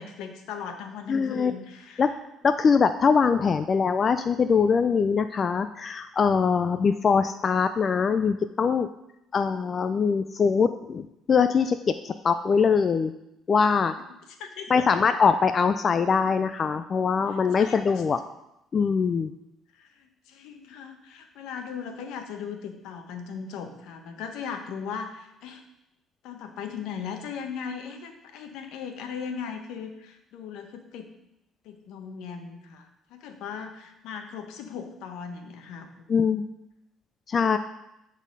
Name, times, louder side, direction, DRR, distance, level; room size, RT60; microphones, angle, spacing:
voice 1, 0.0-2.0 14.4-14.9 17.6-17.8 19.8-25.6 26.2-31.1 31.6-35.9, left 6 dB, 80° left, 6 dB, 1.0 m, -38 dB
voice 2, 1.1-1.5 2.0-2.1 2.4-8.9 9.3-13.1 13.5-13.9 14.7-18.2 18.7-19.3 36.1-36.5 37.3-37.6, left 5 dB, 40° left, 10 dB, 0.4 m, -22 dB
9.4 x 4.1 x 5.3 m, 0.85 s
cardioid pair, 95°, 0 cm